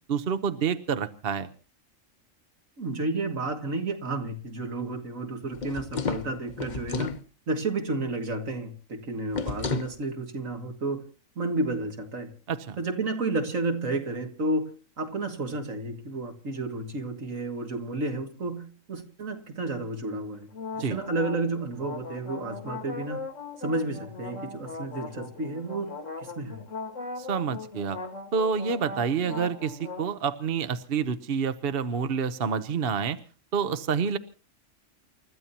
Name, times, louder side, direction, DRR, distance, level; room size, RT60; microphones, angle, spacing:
voice 1, 0.1-1.5 12.5-12.8 20.8-21.0 27.2-28.0 28.3-33.2 33.5-34.2, right 6 dB, 50° right, 1.1 m, -28 dB
voice 2, 2.8-7.1 7.5-11.0 11.4-12.3 12.8-14.7 15.0-20.5 20.9-23.2 23.6-26.6, right 2 dB, 80° right, 2.7 m, -31 dB
sound 1, 5.5-7.2 9.3-10.0, left 4 dB, 40° left, 1.0 m, -31 dB
sound 2, 20.5-30.1, left 3 dB, 70° left, 2.2 m, -39 dB
29.5 x 14.0 x 2.9 m
omnidirectional pair, 1.3 m